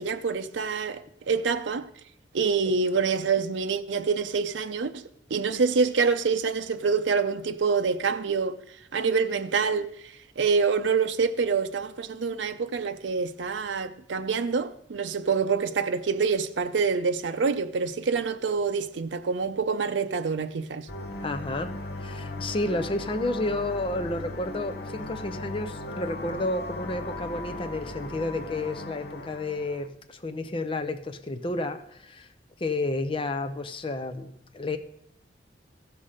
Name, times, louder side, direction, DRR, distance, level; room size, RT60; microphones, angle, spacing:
voice 1, 0.0-1.9 2.3-5.0 5.3-8.6 8.9-20.9, right 5 dB, 85° right, 0.5 m, -26 dB
sound 1, 20.9-29.9, left 2 dB, 60° left, 0.9 m, -37 dB
voice 2, 21.2-21.7 22.0-32.3 32.6-34.8, left 2 dB, 30° left, 0.6 m, -31 dB
15.5 x 5.8 x 5.0 m
head